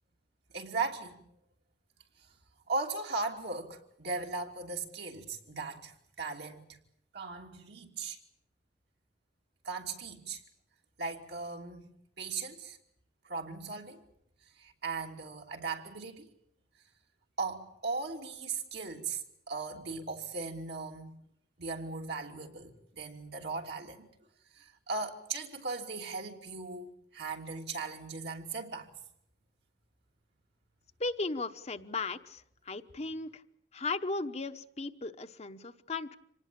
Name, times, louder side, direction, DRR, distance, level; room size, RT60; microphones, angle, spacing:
voice 1, 0.5-1.2 2.7-6.8 7.1-8.2 9.6-10.4 11.0-11.9 12.2-12.8 13.2-14.0 14.6-16.3 17.4-21.2 21.6-24.1 24.5-28.9, right 4 dB, 65° right, 3.0 m, -38 dB
voice 2, 31.0-33.4 33.7-36.2, left 3 dB, 40° left, 1.0 m, -36 dB
26.0 x 19.0 x 8.7 m
head